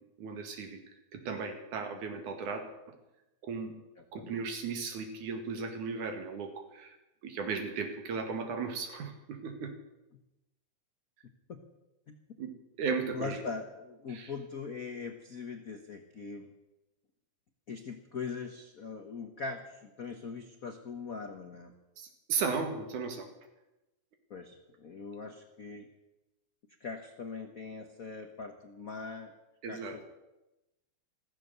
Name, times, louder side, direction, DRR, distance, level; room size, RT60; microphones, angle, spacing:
voice 1, 0.2-0.8 1.1-2.6 3.4-3.7 4.1-7.0 7.2-9.7 12.4-12.5 12.8-13.4 14.1-14.3 22.0-23.3 29.6-30.0, right 5 dB, 90° right, 5 dB, 3.4 m, -36 dB
voice 2, 4.0-4.3 8.3-8.4 11.5-11.6 12.1-12.2 13.1-16.5 17.7-21.7 24.3-25.9 26.8-29.3 29.7-30.1, left 4 dB, 75° left, 5 dB, 0.7 m, -41 dB
14.5 x 14.5 x 6.8 m, 0.97 s
omnidirectional pair, 3.4 m